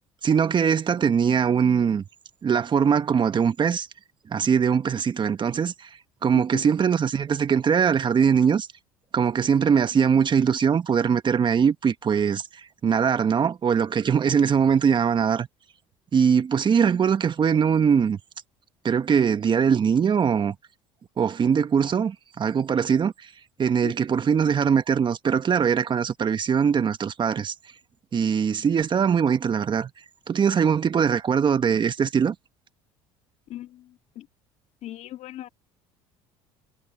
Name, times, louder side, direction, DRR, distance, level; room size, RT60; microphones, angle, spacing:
voice 1, 0.2-2.0 2.4-3.9 4.3-5.9 6.2-8.7 9.1-15.5 16.1-18.2 18.8-20.5 21.2-23.3 23.6-27.5 28.1-29.9 30.3-32.3, right 7 dB, 35° right, 1.5 m, -21 dB
voice 2, 6.3-6.7 23.8-23.9 33.5-34.3 34.8-35.5, left 13 dB, 60° left, 2.3 m, -38 dB
supercardioid pair, 80°, 13 cm